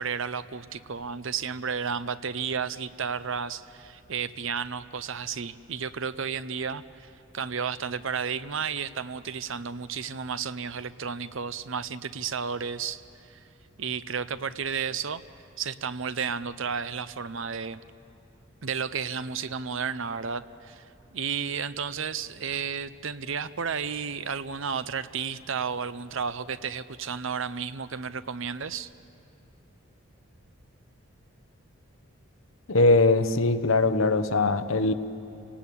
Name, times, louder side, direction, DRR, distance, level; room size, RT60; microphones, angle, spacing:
voice 1, 0.0-7.1 7.3-13.4 13.8-15.2 15.6-17.8 18.6-20.8 21.1-28.9, right 6 dB, 65° right, 14 dB, 0.7 m, -32 dB
voice 2, 32.7-34.9, left 2 dB, 70° left, 11 dB, 1.0 m, -21 dB
28.5 x 18.5 x 8.6 m, 2.9 s
head